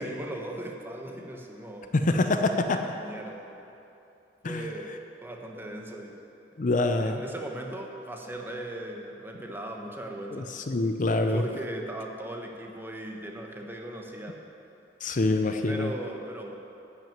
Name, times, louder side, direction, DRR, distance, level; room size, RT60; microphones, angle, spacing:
voice 1, 0.0-1.9 2.8-3.7 4.5-4.9 5.2-6.2 7.0-10.5 11.3-14.4 15.7-16.5, right 1 dB, 10° right, 1 dB, 1.1 m, -38 dB
voice 2, 1.9-2.9 4.4-4.7 6.6-7.2 10.3-11.4 15.0-15.9, left 2 dB, 45° left, 7 dB, 0.5 m, -25 dB
11.0 x 6.2 x 8.8 m, 2.8 s
head